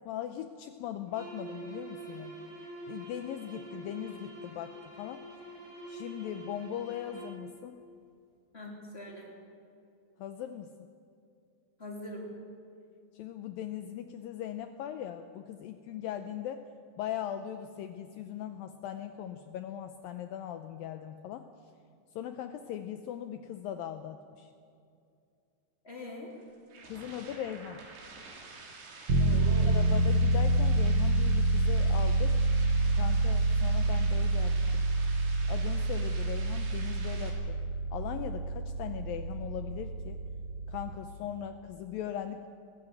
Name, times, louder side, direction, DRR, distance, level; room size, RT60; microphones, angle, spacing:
voice 1, 0.0-2.4 2.9-5.2 5.9-7.8 10.2-10.7 13.1-16.6 17.0-21.4 22.2-24.5 26.9-27.8 29.7-32.4 32.9-34.8 35.5-37.6 37.9-40.2 40.7-42.5, left 10 dB, 85° left, 8 dB, 2.0 m, -39 dB
sound 1, 1.1-7.4, right 2 dB, 20° right, 6.4 m, -46 dB
voice 2, 8.5-9.3 11.8-12.3 25.8-26.3 29.2-29.7, left 1 dB, 15° left, -2 dB, 3.3 m, -42 dB
sound 2, 26.3-37.3, right 4 dB, 85° right, 5.3 m, -48 dB
sound 3, 29.1-40.9, right 2 dB, 60° right, 1.3 m, -27 dB
19.5 x 15.0 x 9.1 m, 2.4 s
omnidirectional pair, 4.9 m